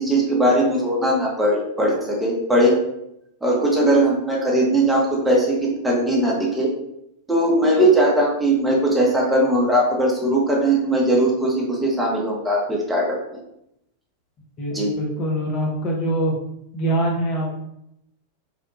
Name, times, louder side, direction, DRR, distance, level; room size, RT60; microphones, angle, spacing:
voice 1, 0.0-2.8 3.4-6.7 7.3-13.2 14.7-15.0, right 1 dB, 5° right, -3 dB, 0.7 m, -19 dB
voice 2, 14.6-16.3 16.7-17.6, right 1 dB, 35° left, -1 dB, 0.6 m, -24 dB
2.8 x 2.2 x 2.5 m, 0.79 s
figure-of-eight pair, 90°, 0 cm